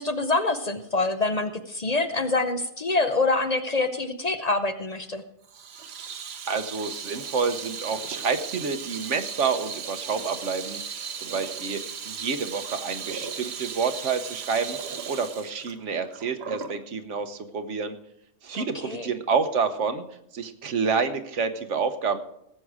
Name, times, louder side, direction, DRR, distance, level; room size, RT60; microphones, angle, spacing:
voice 1, 0.0-5.2 18.5-19.1, left 3 dB, 40° left, 8 dB, 0.7 m, -26 dB
Water tap faucet / Sink (filling or washing), 5.5-16.8, right 6 dB, 60° right, 1.1 m, -36 dB
voice 2, 6.5-14.8 15.1-18.0 18.4-20.0 20.3-22.2, right 5 dB, 80° right, 8 dB, 1.4 m, -28 dB
18.0 x 7.7 x 4.9 m, 0.77 s
omnidirectional pair, 1.2 m